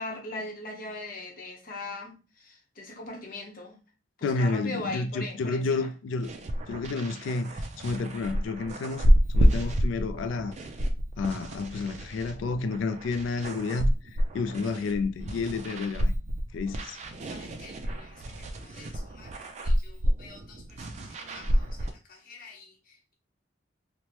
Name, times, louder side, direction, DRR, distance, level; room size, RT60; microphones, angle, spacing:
voice 1, 0.0-3.8 4.2-5.9 17.3-21.0 21.3-23.1, left 2 dB, 50° left, 0.8 m, -41 dB
voice 2, 4.2-6.3 6.7-9.1 9.4-10.5 11.2-13.9 14.3-16.1 16.5-17.0, left 3 dB, 80° left, 0.3 m, -30 dB
sound 1, 6.2-21.9, equal, 40° right, 0.3 m, -28 dB
3.0 x 2.1 x 2.9 m
head